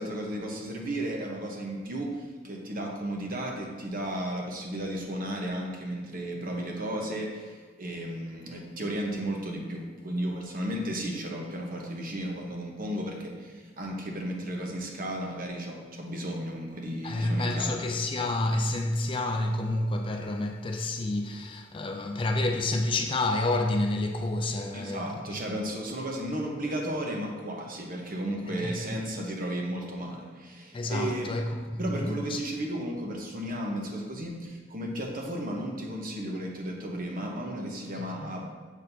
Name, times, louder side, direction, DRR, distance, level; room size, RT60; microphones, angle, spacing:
voice 1, 0.0-17.7 24.7-31.3 31.8-38.5, right 1 dB, 45° right, 1.0 m, -34 dB
voice 2, 17.0-25.4 28.5-29.0 30.7-32.4 38.2-38.3, left 2 dB, 25° left, 0.4 m, -29 dB
7.2 x 6.3 x 2.7 m
head